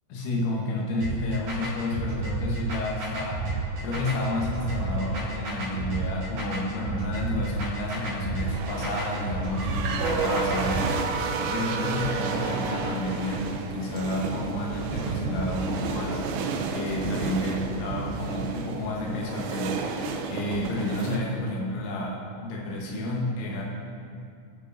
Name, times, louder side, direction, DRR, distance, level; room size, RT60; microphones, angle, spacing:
voice 1, 0.1-3.4 3.8-16.2 16.7-23.6, left 1 dB, 75° left, -3 dB, 3.6 m, -30 dB
sound 1, 1.0-10.8, right 2 dB, 50° right, 3.1 m, -31 dB
sound 2, 3.4-5.7 8.4-21.2, right 4 dB, 80° right, 2.5 m, -32 dB
19.0 x 6.4 x 2.7 m, 2.4 s
omnidirectional pair, 5.6 m